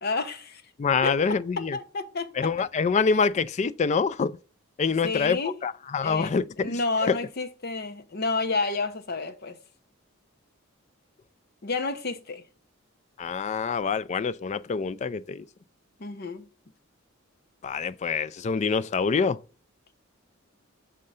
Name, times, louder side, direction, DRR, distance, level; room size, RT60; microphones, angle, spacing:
voice 1, 0.0-0.6 1.0-2.7 5.0-5.6 6.0-9.6 11.6-12.4 16.0-16.5, left 3 dB, 50° left, 0.8 m, -30 dB
voice 2, 0.8-1.8 2.4-4.3 4.8-5.4 5.6-7.1 13.2-15.4 17.6-19.4, left 5 dB, 35° left, 0.3 m, -26 dB
6.5 x 3.7 x 5.5 m
head